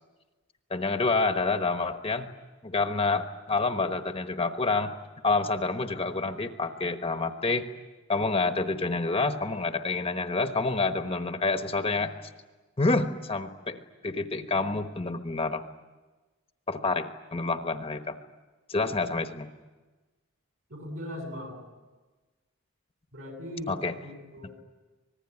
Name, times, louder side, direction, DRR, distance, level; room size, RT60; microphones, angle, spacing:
voice 1, 0.7-2.3 2.6-4.9 5.2-7.6 8.1-12.1 12.8-15.6 16.7-18.2 18.7-19.5 23.7-23.9, left 3 dB, 25° left, 7 dB, 1.1 m, -28 dB
voice 2, 20.7-21.6 23.1-24.6, left 1 dB, 65° right, 3 dB, 7.9 m, -39 dB
25.5 x 20.0 x 9.8 m, 1.3 s
head